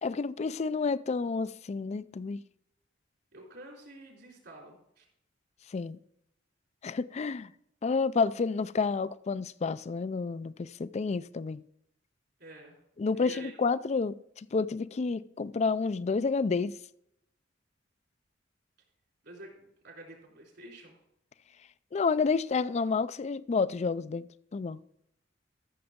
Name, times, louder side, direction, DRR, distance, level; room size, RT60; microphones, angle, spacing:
voice 1, 0.0-2.4 5.7-6.0 6.8-7.5 7.8-11.6 13.0-16.7 21.9-24.3 24.5-24.8, left 4 dB, 35° left, 0.4 m, -30 dB
voice 2, 3.3-5.1 12.4-12.8 13.1-13.5 19.2-21.0, right 1 dB, 65° right, 3.8 m, -48 dB
14.0 x 6.9 x 3.7 m
head